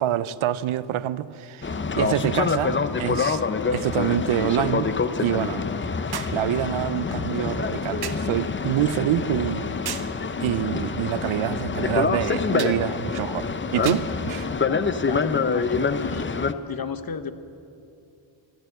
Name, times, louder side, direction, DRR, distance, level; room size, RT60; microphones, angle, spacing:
voice 1, 0.0-4.9 5.2-5.7 6.3-9.7 10.4-14.5, right 12 dB, 85° right, 16 dB, 0.6 m, -26 dB
Boat Water vehicle, 1.6-16.5, left 5 dB, 25° left, 0.6 m, -26 dB
sound 1, 6.1-6.5 8.0-8.3 9.9-10.2 12.6-12.8 13.9-14.1 15.2-15.3, right 8 dB, 55° right, 0.9 m, -35 dB
voice 2, 14.7-16.3 16.7-17.3, left 6 dB, 50° left, 11 dB, 0.9 m, -33 dB
15.0 x 12.5 x 7.8 m, 2.6 s
cardioid pair, 90°, 47 cm